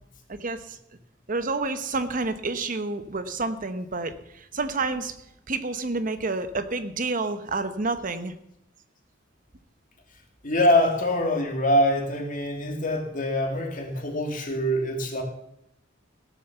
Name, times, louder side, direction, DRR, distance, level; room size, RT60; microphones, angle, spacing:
voice 1, 0.3-0.8 1.3-5.2 5.5-8.3, right 3 dB, 45° right, 10 dB, 0.9 m, -29 dB
voice 2, 10.4-15.2, left 1 dB, 45° left, 2 dB, 2.6 m, -24 dB
17.0 x 7.2 x 7.0 m, 0.79 s
head